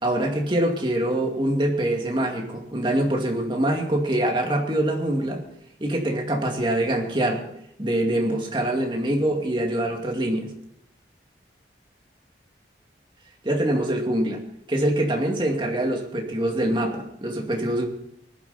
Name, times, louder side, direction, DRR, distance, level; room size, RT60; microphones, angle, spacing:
voice 1, 0.0-5.4 5.8-7.4 7.8-10.5 13.4-14.4 14.7-17.9, right 1 dB, 25° right, 1 dB, 2.4 m, -24 dB
19.5 x 11.5 x 4.3 m, 0.77 s
head